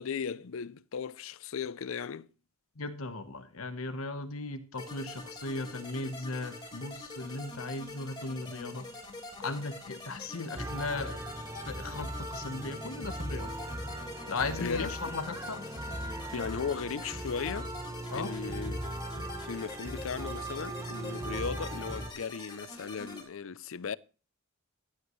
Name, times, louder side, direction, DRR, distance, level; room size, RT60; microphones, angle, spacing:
voice 1, 0.0-2.3 14.6-15.0 16.3-17.7 18.1-18.8 19.4-24.0, left 6 dB, 70° left, 0.5 m, -36 dB
voice 2, 2.8-8.9 9.4-11.2 11.6-13.5 14.3-15.6 18.1-18.3, left 3 dB, 85° left, 1.1 m, -37 dB
sound 1, 4.8-23.2, left 2 dB, 20° left, 3.4 m, -45 dB
sound 2, 10.6-22.1, right 1 dB, 15° right, 1.0 m, -39 dB
14.5 x 10.5 x 3.1 m
head